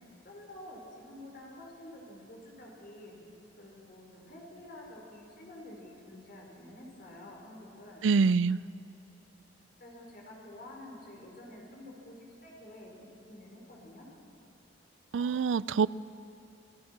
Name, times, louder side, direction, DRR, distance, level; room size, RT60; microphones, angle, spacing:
voice 1, 0.2-3.2 3.6-8.1 9.8-14.1, left 1 dB, 50° left, -1 dB, 5.3 m, -49 dB
voice 2, 8.0-8.6 15.1-15.9, right 5 dB, 90° right, 19 dB, 0.4 m, -25 dB
27.5 x 17.0 x 6.0 m, 2.7 s
head